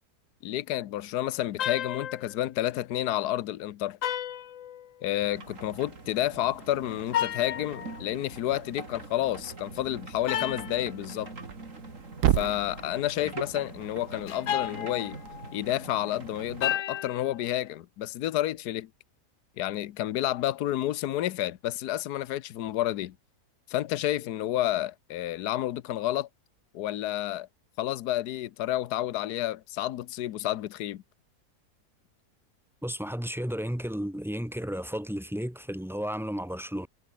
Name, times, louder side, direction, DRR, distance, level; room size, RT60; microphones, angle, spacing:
voice 1, 0.4-4.0 5.0-11.3 12.3-15.2 15.5-18.9 19.6-23.1 23.7-26.3 26.7-27.5 27.8-31.0, left 13 dB, 80° left, 1.3 m, -30 dB
sound 1, 1.6-2.4 4.0-5.2 7.1-8.0 10.3-10.9 14.3-15.6 16.6-17.3, left 10 dB, 60° left, 1.1 m, -32 dB
sound 2, 5.2-16.7, right 3 dB, 50° right, 3.9 m, -43 dB
Thump thud, 11.3-15.4, right 11 dB, 80° right, 1.4 m, -33 dB
voice 2, 32.8-36.9, equal, ahead, 0.8 m, -33 dB
omnidirectional pair, 1.7 m